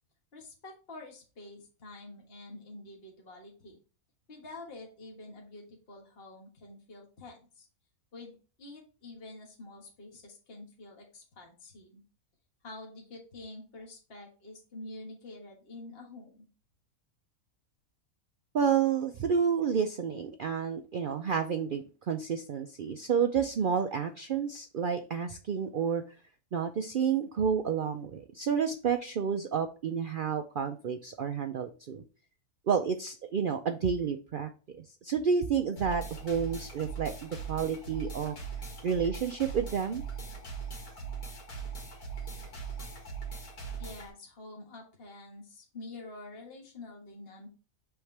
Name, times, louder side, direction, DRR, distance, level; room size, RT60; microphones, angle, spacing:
voice 1, 0.3-3.8 4.3-7.7 8.1-12.0 12.6-16.5 43.8-47.5, left 2 dB, 45° left, 0 dB, 1.6 m, -47 dB
voice 2, 18.5-26.0 26.5-32.0 32.7-34.5 35.0-38.3 38.8-40.0, right 7 dB, 80° right, 6 dB, 0.4 m, -30 dB
sound 1, 35.8-44.1, right 6 dB, 85° left, 2.1 m, -40 dB
8.1 x 3.6 x 3.3 m, 0.35 s
omnidirectional pair, 1.5 m